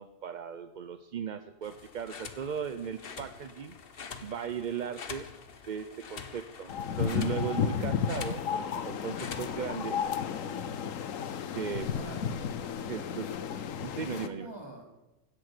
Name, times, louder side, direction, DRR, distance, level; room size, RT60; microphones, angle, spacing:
voice 1, 0.0-3.8 4.2-5.3 5.7-10.0 11.5-11.9 12.9-13.3 13.8-14.5, right 8 dB, 50° right, 10 dB, 0.6 m, -37 dB
sound 1, 1.6-9.7, left 6 dB, 50° left, 1.1 m, -46 dB
sound 2, 6.7-14.3, left 7 dB, 80° left, 1.2 m, -33 dB
voice 2, 11.8-13.0 14.1-14.8, right 2 dB, 20° right, 0 dB, 3.2 m, -46 dB
16.0 x 10.5 x 6.7 m, 1.0 s
omnidirectional pair, 1.4 m